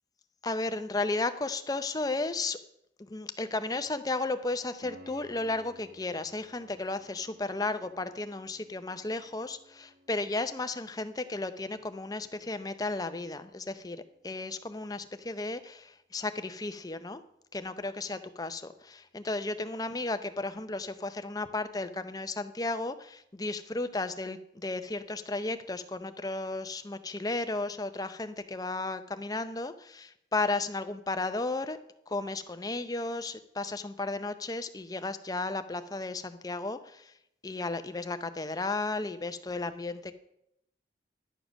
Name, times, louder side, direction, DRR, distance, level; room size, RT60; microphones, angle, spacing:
voice 1, 0.4-2.6 3.0-17.2 17.5-31.8 32.1-37.1 37.4-40.1, left 2 dB, 20° left, 10 dB, 0.6 m, -34 dB
Piano, 4.8-15.5 18.8-18.9, equal, 50° right, 1.4 m, -59 dB
11.0 x 7.1 x 6.2 m, 0.78 s
head